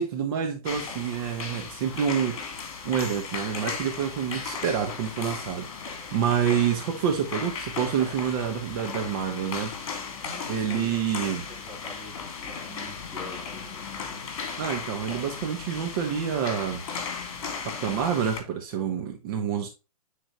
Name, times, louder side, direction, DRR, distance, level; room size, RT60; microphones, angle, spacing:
voice 1, 0.0-2.5 2.8-9.7 10.5-11.4 14.6-16.8 17.6-19.7, right 8 dB, 35° right, 1.1 m, -28 dB
sound 1, 0.6-18.4, left 5 dB, 45° left, 1.9 m, -36 dB
voice 2, 10.2-14.3, left 2 dB, 5° left, 1.8 m, -46 dB
8.9 x 4.0 x 3.0 m
figure-of-eight pair, 120°, 20 cm